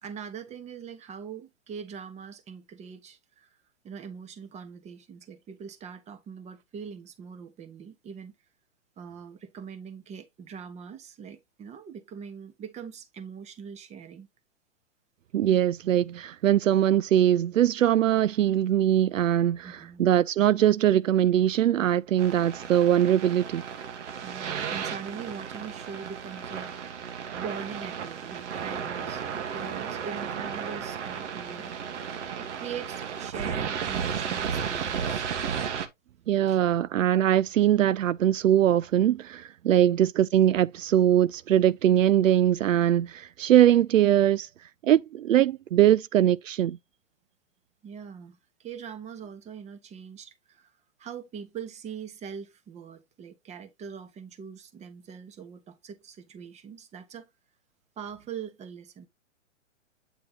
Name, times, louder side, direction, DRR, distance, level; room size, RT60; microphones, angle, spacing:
voice 1, 0.0-3.6 3.8-8.3 9.0-14.3 19.6-20.1 24.2-26.9 27.3-31.7 32.4-35.3 36.5-36.6 39.8-39.9 47.8-50.7 51.0-57.3 58.0-59.1, right 7 dB, 15° right, 1.2 m, -42 dB
voice 2, 15.3-23.6 36.3-44.5 44.8-46.8, right 11 dB, 80° right, 0.5 m, -22 dB
sound 1, 22.2-35.9, right 7 dB, 60° right, 1.5 m, -34 dB
9.1 x 3.2 x 3.9 m
hypercardioid pair, 120°, 38 cm